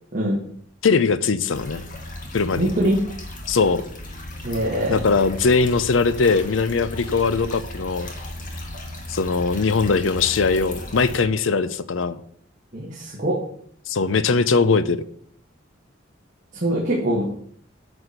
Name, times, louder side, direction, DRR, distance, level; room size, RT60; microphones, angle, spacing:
voice 1, 0.8-1.8 2.3-2.7 3.5-3.8 4.9-8.1 9.1-12.2 13.9-15.0, left 4 dB, 85° left, 15 dB, 0.6 m, -20 dB
sound 1, 1.5-11.2, left 1 dB, 45° left, 1.9 m, -36 dB
voice 2, 2.6-3.0 4.4-5.0 12.7-13.4 16.5-17.2, right 1 dB, 40° right, -4 dB, 1.7 m, -23 dB
9.0 x 4.3 x 6.6 m, 0.63 s
head